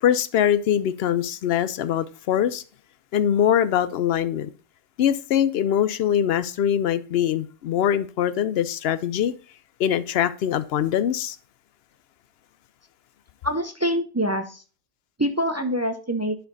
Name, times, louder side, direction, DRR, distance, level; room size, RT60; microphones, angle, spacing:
voice 1, 0.0-2.6 3.1-4.5 5.0-9.3 9.8-11.4, left 9 dB, 65° left, 0.7 m, -22 dB
voice 2, 13.4-14.6 15.2-16.4, equal, 25° right, 0.3 m, -25 dB
10.0 x 4.5 x 3.9 m
omnidirectional pair, 1.3 m